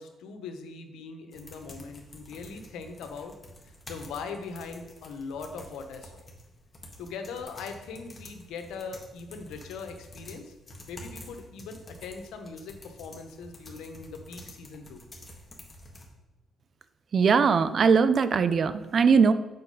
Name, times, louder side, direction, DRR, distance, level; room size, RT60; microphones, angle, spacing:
voice 1, 0.0-3.3 3.6-6.1 7.0-10.5 10.9-15.0, left 5 dB, 85° left, 6 dB, 0.9 m, -40 dB
sound 1, 1.3-16.1, left 1 dB, 25° left, 1.5 m, -49 dB
voice 2, 17.1-19.3, right 5 dB, 50° right, 13 dB, 0.4 m, -21 dB
6.9 x 4.1 x 5.3 m, 1.0 s
cardioid pair, 90°, 0 cm